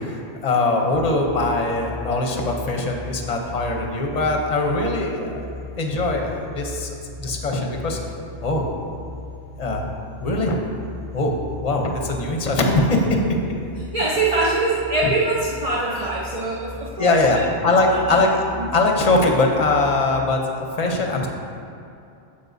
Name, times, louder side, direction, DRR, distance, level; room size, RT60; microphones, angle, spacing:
voice 1, 0.4-5.5 5.8-8.0 8.4-8.6 9.6-9.9 10.2-10.6 11.1-13.4 14.4-14.5 15.9-16.1 17.0-17.4 17.6-18.4 18.7-21.3, left 2 dB, 40° left, 1 dB, 0.9 m, -21 dB
sound 1, 0.9-20.1, left 2 dB, 65° right, 2.0 m, -38 dB
voice 2, 13.9-17.4 17.9-18.2 18.6-18.7, right 2 dB, 40° right, -5 dB, 0.7 m, -23 dB
9.1 x 7.0 x 2.7 m, 2.6 s
omnidirectional pair, 1.1 m